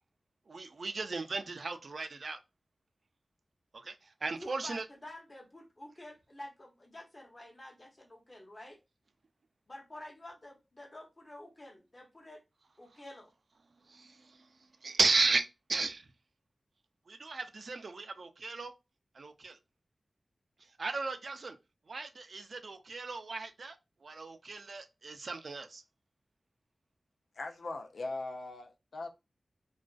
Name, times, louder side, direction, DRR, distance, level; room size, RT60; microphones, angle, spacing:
voice 1, 0.5-2.4 3.7-4.8 13.9-14.5 14.8-16.1 17.1-18.7 19.1-19.6 20.8-21.6 21.9-23.8 24.0-25.8, right 3 dB, 65° right, 0.3 m, -35 dB
voice 2, 4.2-8.8 9.7-12.4 12.8-13.3, left 1 dB, 30° left, 0.7 m, -49 dB
voice 3, 27.4-29.1, left 2 dB, 85° left, 0.4 m, -40 dB
2.4 x 2.2 x 2.3 m
wide cardioid pair, 100°, 0 cm